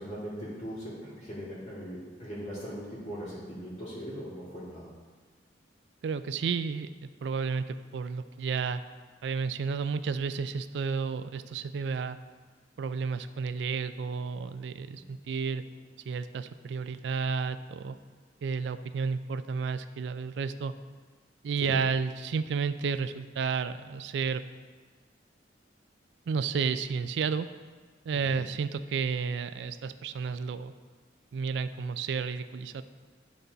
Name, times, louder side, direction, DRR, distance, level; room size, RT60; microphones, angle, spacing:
voice 1, 0.0-4.9 14.9-15.0 21.6-21.7 28.1-28.4, equal, 40° left, -12 dB, 2.2 m, -40 dB
voice 2, 6.0-8.8 9.2-12.2 12.8-15.6 16.1-18.0 18.4-20.7 21.4-24.4 26.3-27.5 28.1-30.7 31.3-32.8, right 5 dB, 70° right, 12 dB, 0.3 m, -31 dB
11.0 x 4.0 x 3.9 m, 1.5 s
head